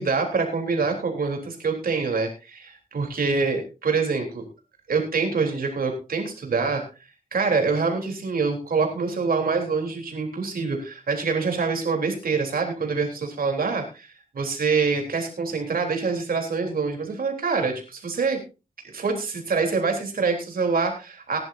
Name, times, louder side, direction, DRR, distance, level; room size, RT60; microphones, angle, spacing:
voice 1, 0.0-4.4 4.9-6.8 7.3-18.4 18.8-21.4, right 4 dB, 85° right, 3 dB, 3.6 m, -25 dB
19.5 x 11.0 x 2.7 m, 0.30 s
wide cardioid pair, 120°, 15 cm